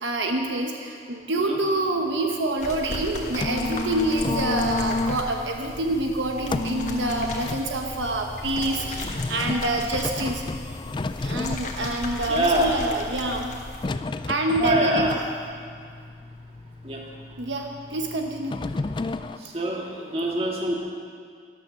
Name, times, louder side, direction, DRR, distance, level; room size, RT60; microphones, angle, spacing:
voice 1, 0.0-10.4 11.2-13.5 14.3-15.2 17.4-18.6, right 2 dB, 80° right, 3 dB, 1.1 m, -26 dB
sound 1, 2.6-13.9, left 1 dB, 40° left, 1.6 m, -37 dB
sound 2, 3.0-19.4, left 3 dB, 25° left, 0.3 m, -32 dB
voice 2, 12.3-12.8 14.6-15.2 16.8-17.0 19.4-20.8, right 1 dB, 30° right, -1 dB, 1.9 m, -25 dB
13.0 x 12.0 x 6.3 m, 2.1 s
head